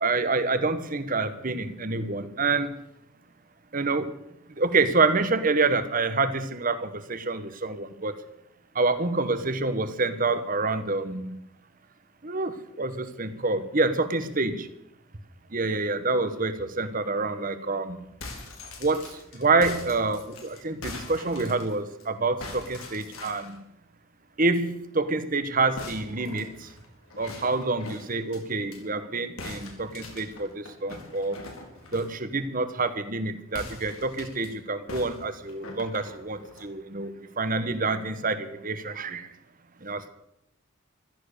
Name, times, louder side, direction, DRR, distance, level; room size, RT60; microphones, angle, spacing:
voice 1, 0.0-2.7 3.7-4.1 4.6-8.1 8.7-11.4 12.2-14.7 15.5-18.0 18.8-19.1 19.3-23.6 24.4-26.7 27.2-31.4 31.9-39.3 39.8-40.1, right 3 dB, 40° right, 11 dB, 1.3 m, -27 dB
sound 1, 18.0-22.0 22.4-23.6 25.8-28.8 29.4-32.2 33.5-34.5 34.9-36.7, left 2 dB, 90° left, 4.2 m, -42 dB
15.0 x 13.0 x 6.8 m, 0.82 s
head